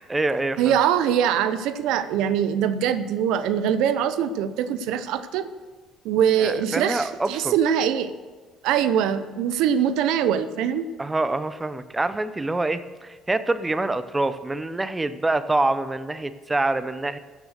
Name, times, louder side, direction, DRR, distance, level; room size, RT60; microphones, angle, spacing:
voice 1, 0.0-0.8 6.4-7.5 11.0-17.2, right 2 dB, 15° right, 13 dB, 0.6 m, -26 dB
voice 2, 0.6-5.5 6.0-8.1 8.6-10.9, right 9 dB, 80° right, 12 dB, 0.6 m, -23 dB
15.5 x 6.5 x 6.5 m, 1.3 s
supercardioid pair, 85°, 0 cm